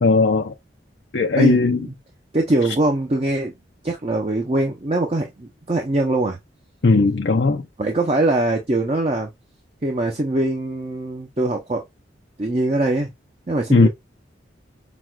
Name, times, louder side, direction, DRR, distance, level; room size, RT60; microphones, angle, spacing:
voice 1, 0.0-0.5 1.1-1.9 6.8-7.6 13.7-13.9, left 3 dB, 65° left, 0.6 m, -17 dB
voice 2, 1.4-1.9 2.3-3.5 3.8-6.4 7.8-9.3 9.8-11.8 12.4-13.1 13.5-13.9, right 2 dB, 35° right, 0.6 m, -22 dB
6.0 x 2.4 x 2.3 m
head